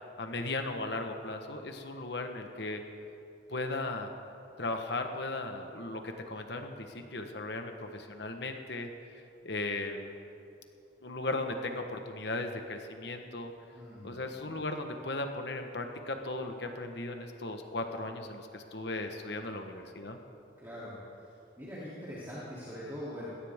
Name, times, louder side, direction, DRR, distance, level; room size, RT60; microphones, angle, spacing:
voice 1, 0.2-2.8 3.5-4.1 4.6-8.9 9.4-10.2 11.0-13.5 14.0-20.2, left 2 dB, 65° left, 5 dB, 1.3 m, -37 dB
voice 2, 13.7-14.1 20.6-21.3 21.6-23.3, equal, 15° right, -10 dB, 3.0 m, -42 dB
21.0 x 17.0 x 3.6 m, 2.6 s
head